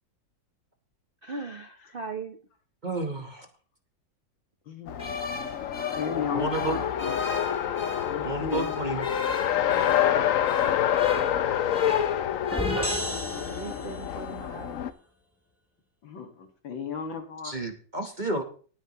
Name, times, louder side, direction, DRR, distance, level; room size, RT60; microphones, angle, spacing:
voice 1, 1.2-2.4 6.6-6.7 13.5-14.8, right 4 dB, 50° right, 7 dB, 0.6 m, -39 dB
voice 2, 2.8-3.5 6.3-6.8 8.2-9.0 17.4-18.4, right 2 dB, 30° right, 5 dB, 1.1 m, -31 dB
voice 3, 4.7-5.0 6.0-7.3 8.1-8.8 16.0-17.6, left 6 dB, 85° left, 5 dB, 2.6 m, -35 dB
Race car auto racing, 4.9-14.9, left 10 dB, 60° left, 0.9 m, -27 dB
sound 1, 5.0-8.2 8.5-12.2 12.4-13.0, left 2 dB, 25° left, 1.7 m, -36 dB
sound 2, 12.5-14.2, left 1 dB, 5° left, 2.6 m, -32 dB
19.0 x 9.5 x 3.0 m, 0.40 s
omnidirectional pair, 2.0 m